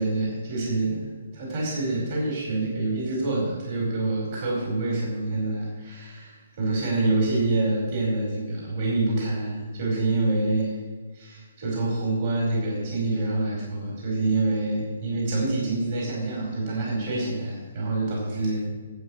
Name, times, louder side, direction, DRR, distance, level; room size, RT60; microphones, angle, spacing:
voice 1, 0.0-1.1 1.3-10.8 11.1-18.7, right 2 dB, 50° right, -3 dB, 4.8 m, -26 dB
12.5 x 8.0 x 6.5 m, 1.4 s
figure-of-eight pair, 135°, 0 cm